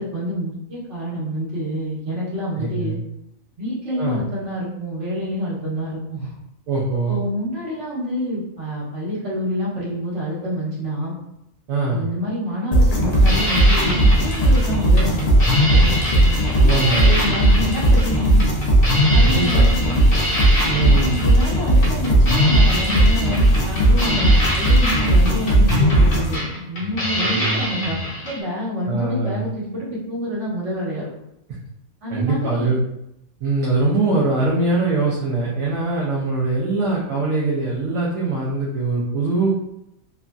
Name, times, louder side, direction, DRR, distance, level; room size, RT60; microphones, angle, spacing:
voice 1, 0.0-3.0 3.6-6.3 7.1-11.1 11.9-15.3 16.1-18.5 19.1-20.1 20.8-31.1 32.0-32.7, equal, 55° right, -7 dB, 1.4 m, -27 dB
voice 2, 2.6-3.0 4.0-4.2 6.7-7.2 11.7-12.1 15.7-16.0 16.3-17.1 18.1-18.2 19.2-19.7 20.7-21.1 27.2-27.6 28.8-29.4 32.1-32.8 33.4-39.6, right 3 dB, 70° right, -5 dB, 1.0 m, -22 dB
sound 1, 12.7-26.3, right 1 dB, 90° left, 0.3 m, -16 dB
sound 2, 13.1-28.4, equal, 50° left, 0.9 m, -26 dB
3.1 x 2.5 x 2.2 m, 0.83 s
omnidirectional pair, 1.5 m